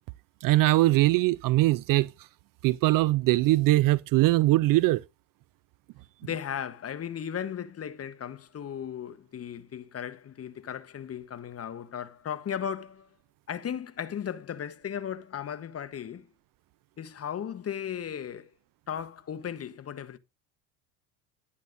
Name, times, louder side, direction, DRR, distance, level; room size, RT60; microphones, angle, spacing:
voice 1, 0.4-2.1 2.6-5.0, right 18 dB, 45° right, 0.4 m, -21 dB
voice 2, 6.2-13.1 13.5-16.3 17.0-18.5 18.9-20.2, left 8 dB, 30° left, 1.1 m, -36 dB
11.0 x 11.0 x 2.6 m
supercardioid pair, 90°, 48 cm